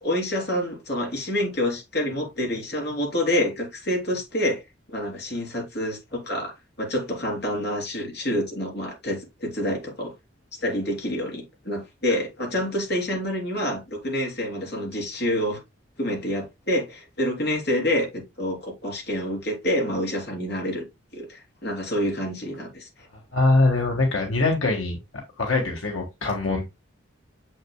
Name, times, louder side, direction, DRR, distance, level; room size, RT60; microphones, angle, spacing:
voice 1, 0.0-4.6 4.9-10.1 10.6-15.6 16.0-20.8 21.1-22.9, left 1 dB, 55° left, 3.6 m, -27 dB
voice 2, 23.3-25.0 25.4-26.7, left 2 dB, 85° left, 1.6 m, -22 dB
7.5 x 6.5 x 2.2 m
head